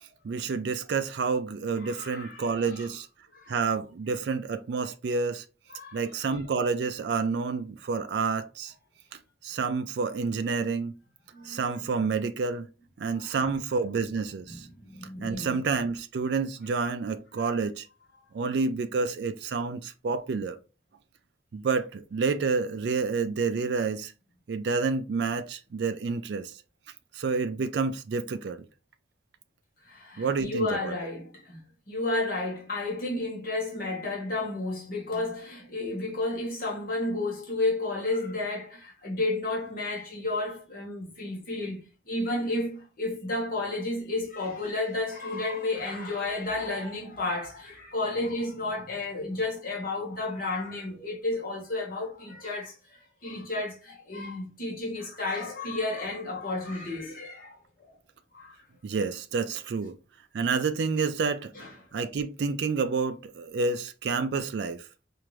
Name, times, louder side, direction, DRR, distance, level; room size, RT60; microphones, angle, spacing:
voice 1, 0.2-3.1 3.5-5.4 5.9-8.7 9.4-10.9 11.4-12.7 13.0-14.7 15.2-17.9 18.3-20.6 21.5-24.1 24.5-26.5 27.1-28.6 30.2-31.1 58.8-60.0 60.3-61.5 61.9-64.9, right 4 dB, 65° right, 0.3 m, -29 dB
voice 2, 1.8-2.8 3.3-3.7 5.7-6.0 11.3-11.8 13.2-13.4 14.5-15.6 29.9-31.6 31.9-57.6 57.8-57.9 58.3-58.6 61.5-61.7, left 2 dB, 50° left, 1.2 m, -32 dB
4.5 x 2.5 x 3.0 m
head